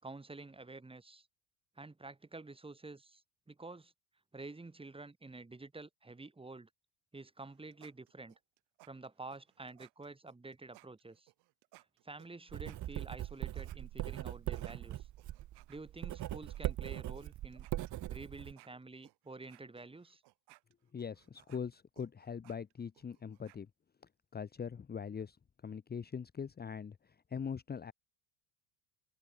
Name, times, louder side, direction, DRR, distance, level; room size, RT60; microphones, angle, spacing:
voice 1, 0.0-1.3 1.8-3.2 3.5-3.9 4.3-6.7 7.1-8.4 8.8-11.3 12.0-15.1 15.7-17.7 18.1-20.2, right 3 dB, 15° right, 3.6 m, -49 dB
sound 1, 7.4-13.8 14.1-16.6 17.1-17.3 17.5-23.6, right 22 dB, 65° right, 3.8 m, -63 dB
Writing, 12.5-18.5, right 14 dB, 45° right, 1.0 m, -40 dB
voice 2, 20.9-23.7 24.3-25.4 25.6-27.9, left 6 dB, 20° left, 1.2 m, -42 dB
open air
supercardioid pair, 95°, 42 cm